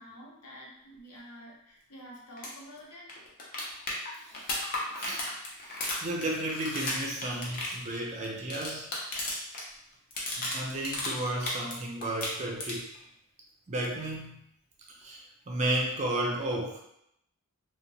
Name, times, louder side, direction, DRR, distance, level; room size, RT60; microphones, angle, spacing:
voice 1, 0.0-3.1, equal, 80° left, -3 dB, 0.8 m, -48 dB
sound 1, 2.4-2.5 2.8-2.9 3.1-9.6 9.9-11.8 12.0-13.0 15.0-15.1, left 2 dB, 40° left, 0.6 m, -34 dB
voice 2, 4.2-4.7 5.0-5.2 5.7-8.9 10.4-12.9 13.7-14.4 14.9-16.8, right 1 dB, 30° right, -2 dB, 0.5 m, -33 dB
2.8 x 2.0 x 2.6 m, 0.76 s
head